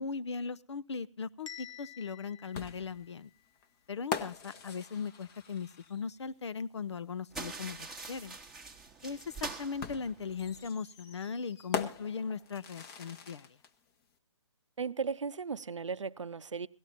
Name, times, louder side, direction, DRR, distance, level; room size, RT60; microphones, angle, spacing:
voice 1, 0.0-3.3 3.9-8.4 9.0-13.5, left 5 dB, 65° left, 0.7 m, -38 dB
Bell, 1.5-3.5, left 9 dB, 80° left, 1.0 m, -50 dB
sound 1, 2.5-6.2 7.7-7.8 9.8-13.7, left 6 dB, 20° left, 0.9 m, -42 dB
sound 2, 7.3-10.7, right 4 dB, ahead, 1.1 m, -44 dB
voice 2, 14.8-16.7, right 5 dB, 75° right, 0.7 m, -36 dB
17.5 x 13.5 x 4.1 m
figure-of-eight pair, 140°, 16 cm